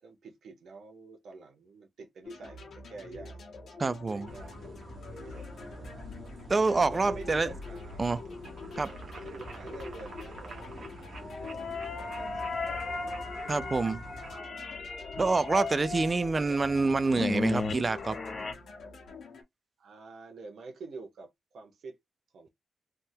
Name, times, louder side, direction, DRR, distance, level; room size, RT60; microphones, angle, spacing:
voice 1, 0.0-3.4 4.0-4.8 5.1-5.5 6.9-8.0 8.6-8.8 9.2-10.8 11.4-13.0 19.8-22.0 22.3-22.5, right 3 dB, 75° right, 0.9 m, -47 dB
sound 1, 2.2-19.4, left 4 dB, 80° left, 1.3 m, -46 dB
voice 2, 3.8-4.3 6.5-7.5 8.0-8.2 8.8-8.9 13.5-14.0 15.2-18.2, right 3 dB, 25° right, 0.3 m, -27 dB
sound 2, 4.3-14.4, right 1 dB, 45° right, 1.2 m, -46 dB
sound 3, 11.1-18.5, left 3 dB, 45° left, 0.7 m, -36 dB
3.5 x 2.1 x 2.7 m
wide cardioid pair, 145°, 0 cm